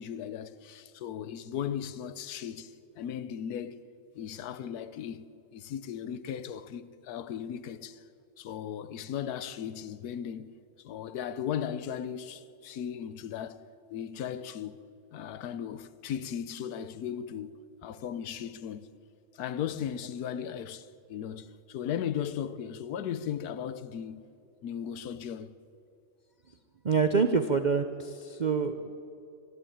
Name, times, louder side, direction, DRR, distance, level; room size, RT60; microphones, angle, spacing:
voice 1, 0.0-3.8 4.1-5.2 5.5-8.0 8.4-10.6 10.8-13.6 13.9-14.9 15.1-18.9 19.3-24.2 24.6-25.6, left 9 dB, 65° left, 1.3 m, -37 dB
voice 2, 26.8-28.9, right 5 dB, 60° right, 0.4 m, -26 dB
25.0 x 13.0 x 8.8 m
omnidirectional pair, 2.0 m